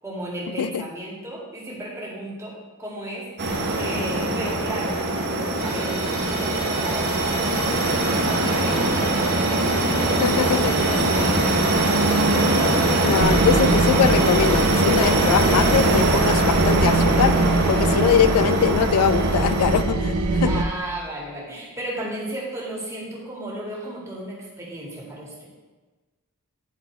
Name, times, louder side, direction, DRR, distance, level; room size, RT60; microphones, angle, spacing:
voice 1, 0.0-11.9 20.4-25.4, right 1 dB, 15° right, -4 dB, 2.0 m, -34 dB
sound 1, 3.4-19.8, right 2 dB, 50° right, 0.9 m, -22 dB
Musical instrument, 5.6-15.8, right 1 dB, 50° left, 2.1 m, -35 dB
voice 2, 10.2-10.7 13.0-17.4 17.7-20.5, left 8 dB, 85° left, 13 dB, 0.3 m, -22 dB
sound 2, 13.2-20.6, right 2 dB, 80° right, 0.6 m, -23 dB
10.0 x 4.1 x 4.5 m, 1.3 s
head